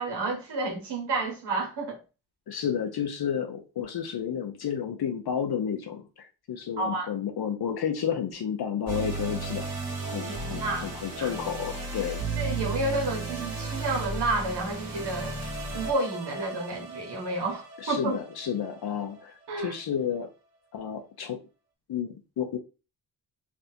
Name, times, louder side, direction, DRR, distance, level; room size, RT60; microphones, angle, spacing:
voice 1, 0.0-2.0 6.8-7.1 10.3-11.3 12.4-15.3 15.7-18.2 19.5-19.7, right 2 dB, 65° right, 1.6 m, -30 dB
voice 2, 2.5-9.7 10.0-12.2 17.8-20.3 20.7-21.4 21.9-22.6, left 8 dB, 60° left, 0.7 m, -31 dB
sound 1, 8.9-19.2, right 3 dB, 35° right, 2.0 m, -35 dB
3.4 x 2.5 x 4.2 m
cardioid pair, 75°, 44 cm